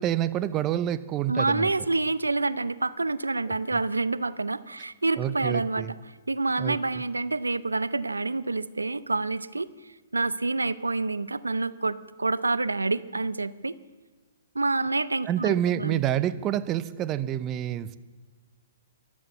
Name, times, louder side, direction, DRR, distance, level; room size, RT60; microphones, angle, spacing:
voice 1, 0.0-1.7 5.2-5.9 6.6-6.8 15.3-18.0, right 11 dB, 25° right, 15 dB, 0.7 m, -27 dB
voice 2, 1.3-6.0 6.3-13.7 14.5-16.0, right 3 dB, 85° right, 17 dB, 0.5 m, -28 dB
13.5 x 12.0 x 7.2 m, 1.3 s
figure-of-eight pair, 125°, 0 cm